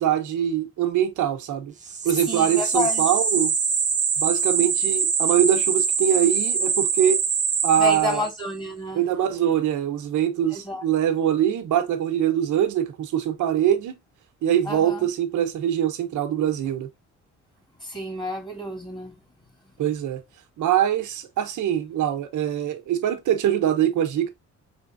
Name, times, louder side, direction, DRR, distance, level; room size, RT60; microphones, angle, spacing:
voice 1, 0.0-1.7 2.0-3.5 4.2-7.2 7.6-8.3 8.9-14.0 14.4-16.9 19.8-20.2 20.6-24.3, right 10 dB, 80° right, 1.1 m, -23 dB
sound 1, 1.8-8.4, right 5 dB, 25° right, 0.9 m, -24 dB
voice 2, 2.3-3.1 7.8-9.0 10.5-10.8 14.7-15.1 17.8-19.1, left 2 dB, 15° left, 2.2 m, -30 dB
4.4 x 3.6 x 2.6 m
cardioid pair, 90°, 30 cm